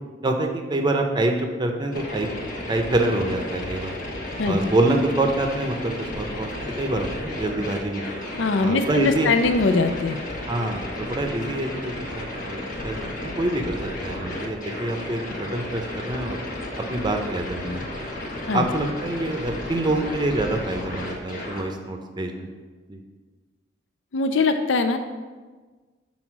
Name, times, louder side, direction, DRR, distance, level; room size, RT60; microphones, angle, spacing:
voice 1, 0.2-2.3 2.7-3.9 4.4-8.1 8.6-9.3 10.5-16.4 16.9-17.8 18.5-22.5 22.9-23.0, right 2 dB, 25° right, 4 dB, 0.6 m, -26 dB
sound 1, 1.9-21.6, left 1 dB, 45° left, 1.2 m, -33 dB
voice 2, 8.4-10.2 18.5-18.6 24.1-25.0, left 3 dB, 75° left, 8 dB, 0.5 m, -21 dB
6.3 x 4.1 x 5.9 m, 1.4 s
head